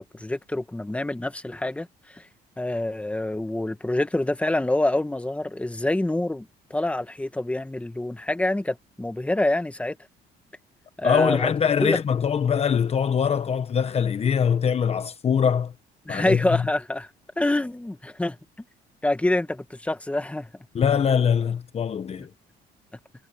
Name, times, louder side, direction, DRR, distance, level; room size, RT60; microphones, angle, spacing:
voice 1, 0.0-2.3 2.6-10.0 11.0-11.5 11.8-12.0 16.1-17.1 17.4-18.4 19.0-20.5, left 1 dB, 5° left, 1.7 m, -26 dB
voice 2, 11.0-15.7 16.1-16.6 20.7-22.3, left 7 dB, 35° left, 1.2 m, -23 dB
cardioid pair, 110°, 17 cm